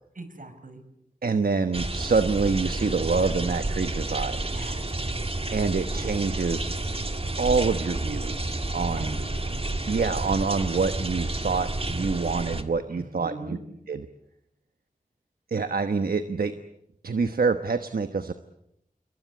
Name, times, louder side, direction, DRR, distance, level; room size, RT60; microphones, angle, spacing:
voice 1, 0.1-0.8 4.5-4.9 8.9-9.6 12.9-13.6, right 2 dB, 65° right, 8 dB, 5.0 m, -41 dB
voice 2, 1.2-4.6 5.5-6.7 7.4-9.2 9.9-13.6 13.9-14.0 15.5-16.5 17.0-18.3, right 4 dB, 85° right, 9 dB, 1.2 m, -26 dB
sound 1, 1.7-12.6, right 2 dB, 40° right, 2.1 m, -30 dB
27.5 x 22.5 x 8.4 m, 0.79 s
wide cardioid pair, 60°, 15 cm